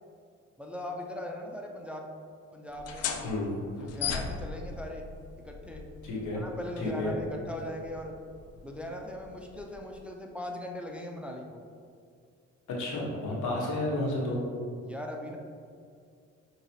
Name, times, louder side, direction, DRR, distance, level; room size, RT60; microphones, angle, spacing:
voice 1, 0.6-2.1 2.5-3.3 3.8-5.1 5.4-5.8 6.4-8.2 8.6-11.6 13.5-13.7 14.8-15.4, left 1 dB, 5° right, 1 dB, 0.4 m, -39 dB
sound 1, 2.7-10.0, left 6 dB, 55° left, 0.5 m, -40 dB
voice 2, 6.0-6.4 6.8-7.2 12.8-14.4, left 1 dB, 80° left, -3 dB, 1.1 m, -31 dB
5.2 x 2.9 x 2.8 m, 2.3 s
cardioid pair, 90°, 30 cm